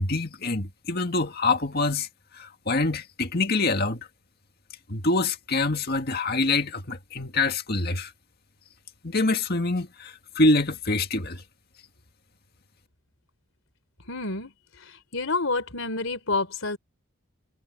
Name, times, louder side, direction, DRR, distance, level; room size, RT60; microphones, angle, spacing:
voice 1, 0.0-2.1 2.4-4.1 4.9-8.1 9.0-11.4, left 2 dB, 50° left, 2.0 m, -25 dB
voice 2, 14.1-14.5 14.8-16.8, left 3 dB, 70° left, 3.6 m, -29 dB
head